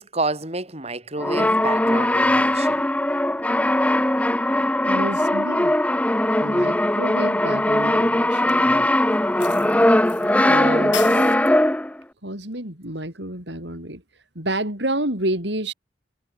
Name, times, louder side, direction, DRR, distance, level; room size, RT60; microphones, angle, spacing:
voice 1, 0.0-2.8, right 2 dB, 35° right, 4.6 m, -29 dB
Brass instrument, 1.2-12.0, left 1 dB, 5° left, 0.8 m, -20 dB
voice 2, 4.8-5.7 6.4-8.9 10.5-11.1 12.2-14.0 14.3-15.7, right 1 dB, 65° right, 7.6 m, -29 dB
sound 1, 8.5-8.6 9.4-10.2 10.5-10.6 10.9-11.4, left 8 dB, 75° left, 4.5 m, -32 dB
head